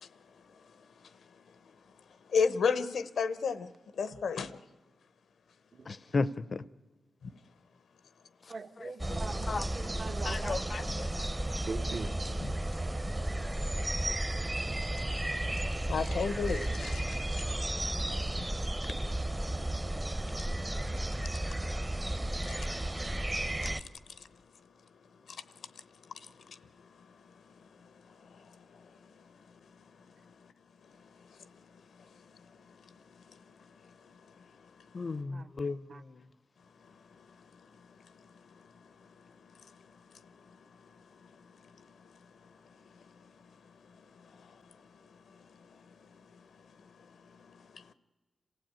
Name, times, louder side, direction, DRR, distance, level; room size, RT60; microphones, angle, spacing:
voice 1, 2.3-4.6 7.2-7.3 11.2-11.3 12.4-12.5 15.9-17.3 21.3-21.4 22.4-22.7 23.6-23.9 25.3-25.8 26.1-26.6 27.0-27.1 28.1-29.2 30.2-30.3 31.3-31.7 32.0-32.3 32.7-32.9 33.3-33.5 33.8-34.5 36.9-37.3 38.5-38.6 39.2-39.7 40.1-40.6 40.8-41.5 41.8-42.2 42.9-43.3 43.8-44.6 45.3-45.9 46.1-46.5 46.8-47.0 47.2-47.9, left 5 dB, 85° left, 0.9 m, -37 dB
voice 2, 5.9-6.6 8.8-9.2 9.5-9.7 10.2-10.8 34.9-35.8, left 3 dB, 50° left, 0.6 m, -34 dB
voice 3, 8.5-10.6 11.7-12.1 35.3-35.5 35.9-36.0, right 4 dB, 55° right, 1.1 m, -41 dB
sound 1, 9.0-23.8, right 1 dB, 20° right, 0.8 m, -33 dB
27.0 x 15.5 x 8.8 m
cardioid pair, 70°, 0 cm